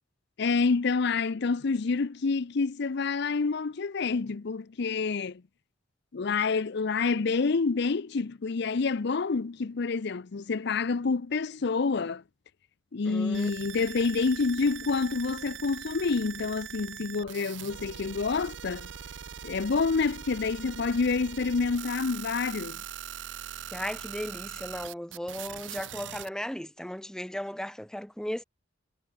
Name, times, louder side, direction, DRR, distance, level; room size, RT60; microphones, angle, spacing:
voice 1, 0.4-5.4 6.1-12.2 12.9-18.9 19.4-22.8, left 4 dB, 65° left, 0.6 m, -28 dB
voice 2, 13.0-13.5 23.7-28.4, equal, 5° left, 0.9 m, -36 dB
sound 1, 13.3-26.3, right 9 dB, 75° right, 0.7 m, -41 dB
head